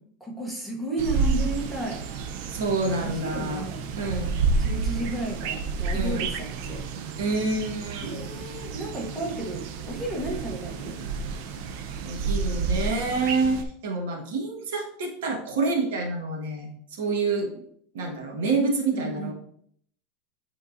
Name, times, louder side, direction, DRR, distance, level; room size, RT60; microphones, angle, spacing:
voice 1, 0.2-2.0 3.0-3.8 4.5-6.8 8.0-11.0 18.9-19.3, right 2 dB, ahead, -4 dB, 0.9 m, -33 dB
sound 1, 1.0-13.6, right 4 dB, 50° right, 0.6 m, -30 dB
voice 2, 2.5-4.4 5.9-6.3 7.2-8.3 12.0-17.6 17.9-19.3, right 3 dB, 85° right, 2 dB, 1.5 m, -28 dB
9.7 x 3.8 x 2.6 m, 0.64 s
supercardioid pair, 175°, 0 cm